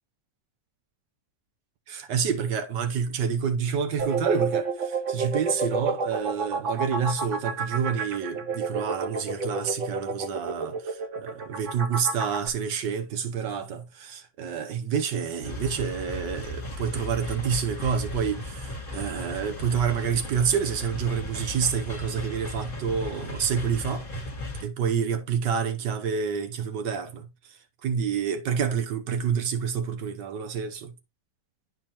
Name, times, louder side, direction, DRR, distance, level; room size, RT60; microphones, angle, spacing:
voice 1, 1.9-24.1 24.6-30.9, right 7 dB, 75° right, 1.5 m, -28 dB
sound 1, 4.0-12.5, right 4 dB, 50° right, 1.1 m, -30 dB
sound 2, 15.4-24.6, left 1 dB, 30° left, 1.6 m, -36 dB
10.0 x 4.3 x 2.9 m
omnidirectional pair, 1.9 m